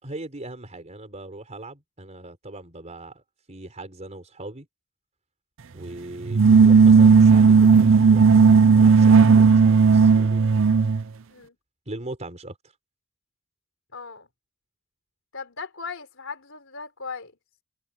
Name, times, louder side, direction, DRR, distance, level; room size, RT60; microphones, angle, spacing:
voice 1, 0.0-3.2 3.5-4.7 5.7-10.4 11.9-12.6, right 2 dB, 35° right, 4.4 m, -40 dB
sound 1, 6.3-11.0, right 5 dB, 65° right, 0.6 m, -14 dB
voice 2, 13.9-14.3 15.3-17.3, left 5 dB, 65° left, 4.2 m, -37 dB
head